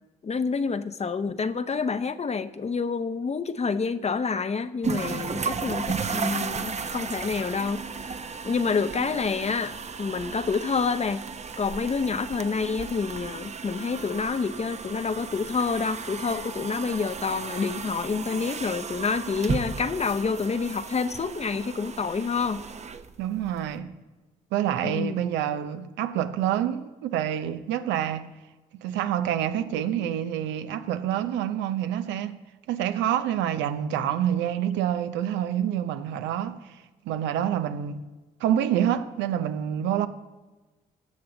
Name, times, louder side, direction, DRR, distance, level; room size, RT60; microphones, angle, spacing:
voice 1, 0.2-7.8 8.4-11.2 11.6-22.6 24.8-25.1, left 5 dB, 35° left, 0.8 m, -28 dB
sound 1, 4.8-23.7, right 5 dB, 35° right, 0.9 m, -34 dB
voice 2, 23.2-23.9 24.5-28.3 28.8-32.4 32.7-36.8 37.0-38.0 38.4-40.1, right 10 dB, 75° right, 0.8 m, -27 dB
16.0 x 7.0 x 4.0 m
hypercardioid pair, 50°, 19 cm